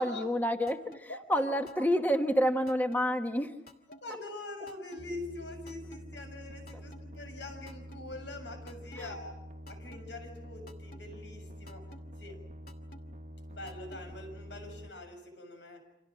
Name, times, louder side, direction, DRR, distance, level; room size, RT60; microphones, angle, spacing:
voice 1, 0.0-3.6 6.7-6.8 9.0-9.1, equal, 10° left, 5 dB, 1.2 m, -29 dB
sound 1, 0.7-1.0 1.7-2.0 2.7-3.0 3.7-4.0 4.7-5.0 5.7-6.0 6.7-7.0 7.7-8.0 8.7-9.0 9.7-10.0 10.7-11.0 11.7-12.0 12.7-13.0 13.7-14.0, left 1 dB, 55° left, 2.3 m, -51 dB
voice 2, 1.1-1.4 4.0-9.3 9.7-11.9 12.2-12.4 13.5-15.8, left 2 dB, 85° left, 6 dB, 6.9 m, -44 dB
sound 2, 5.0-14.9, equal, 45° right, 1.2 m, -47 dB
29.0 x 26.5 x 6.3 m, 0.82 s
head